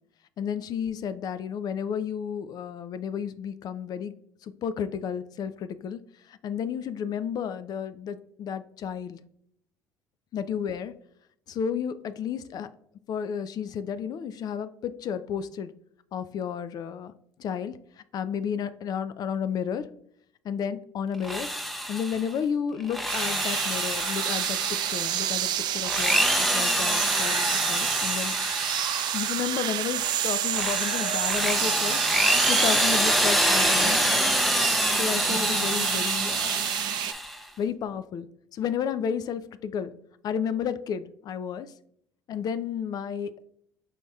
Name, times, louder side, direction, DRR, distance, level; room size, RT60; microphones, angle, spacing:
voice 1, 0.4-4.1 4.4-9.2 10.3-10.9 11.5-12.7 13.1-15.7 16.1-17.1 17.4-17.8 18.1-19.9 20.4-21.5 21.9-28.4 29.1-34.2 35.0-36.7 37.6-38.3 38.5-39.9 40.2-41.7 42.3-43.5, left 7 dB, 50° left, 12 dB, 0.4 m, -32 dB
Drill, 21.1-22.3 22.8-25.2 25.8-29.5 30.0-37.4, equal, ahead, 0.6 m, -26 dB
sound 1, 23.1-37.1, right 11 dB, 60° right, 0.4 m, -29 dB
5.0 x 3.9 x 2.3 m, 0.69 s
supercardioid pair, 75°, 8 cm